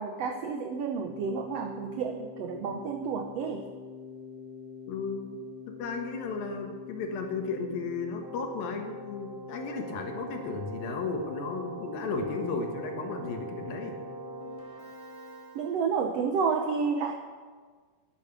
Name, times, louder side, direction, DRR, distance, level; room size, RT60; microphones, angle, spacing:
voice 1, 0.0-3.6 15.5-17.1, right 5 dB, 85° right, 5 dB, 1.4 m, -30 dB
Keyboard (musical), 1.0-16.1, left 1 dB, 15° left, 2.2 m, -43 dB
voice 2, 4.9-5.3 5.8-14.0, left 4 dB, 80° left, 4 dB, 3.3 m, -34 dB
11.0 x 11.0 x 6.8 m, 1.5 s
omnidirectional pair, 4.0 m